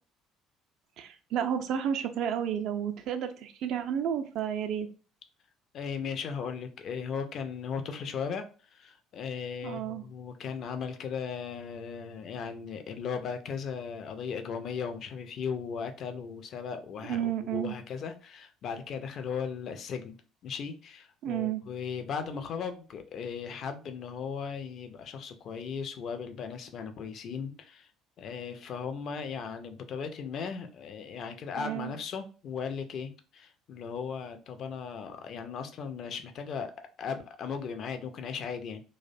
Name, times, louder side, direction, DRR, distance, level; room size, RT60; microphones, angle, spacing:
voice 1, 1.0-4.9 9.6-10.0 17.0-17.7 21.2-21.6 31.6-31.9, right 9 dB, 55° right, 0.3 m, -31 dB
voice 2, 5.7-8.4 8.7-20.2 20.4-27.9 28.2-36.7 37.0-38.8, left 6 dB, 50° left, 0.4 m, -37 dB
2.4 x 2.1 x 2.5 m
figure-of-eight pair, 55°, 0 cm